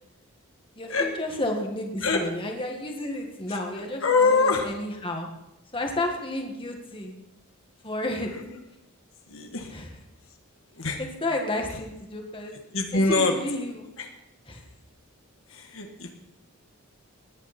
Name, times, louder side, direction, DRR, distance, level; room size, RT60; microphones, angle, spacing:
voice 1, 0.8-5.3 5.7-7.1 7.8-8.3 9.7-9.9 11.0-12.6 12.9-13.9 14.5-14.6, left 1 dB, 25° left, 2 dB, 1.9 m, -31 dB
voice 2, 4.0-4.7 9.3-9.7 10.8-11.0 12.7-13.4 14.0-14.1 15.5-16.1, left 3 dB, 65° left, 3 dB, 1.6 m, -24 dB
20.0 x 10.0 x 4.3 m, 0.90 s
head